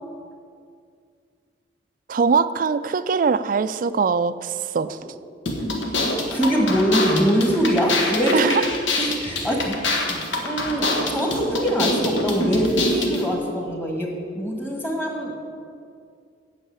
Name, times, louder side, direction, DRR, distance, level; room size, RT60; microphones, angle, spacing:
voice 1, 2.1-5.0 8.3-8.7, right 5 dB, 45° right, 14 dB, 0.3 m, -22 dB
sound 1, 5.4-13.2, left 2 dB, 80° left, 1.4 m, -25 dB
voice 2, 6.3-8.5 9.0-15.3, equal, 10° left, 0 dB, 1.6 m, -23 dB
8.6 x 6.6 x 8.5 m, 2.3 s
head